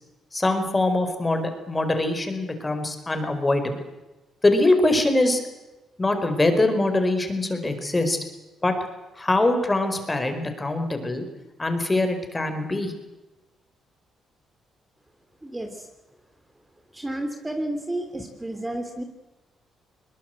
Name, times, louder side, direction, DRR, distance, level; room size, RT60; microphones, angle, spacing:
voice 1, 0.3-3.8 4.4-5.4 6.0-8.2 8.6-8.7 9.2-11.2 11.6-12.9, left 2 dB, 20° left, 7 dB, 4.8 m, -23 dB
voice 2, 15.4-15.9 16.9-19.0, right 1 dB, 15° right, 6 dB, 3.1 m, -31 dB
22.0 x 21.0 x 7.8 m, 1.1 s
cardioid pair, 90°, 0 cm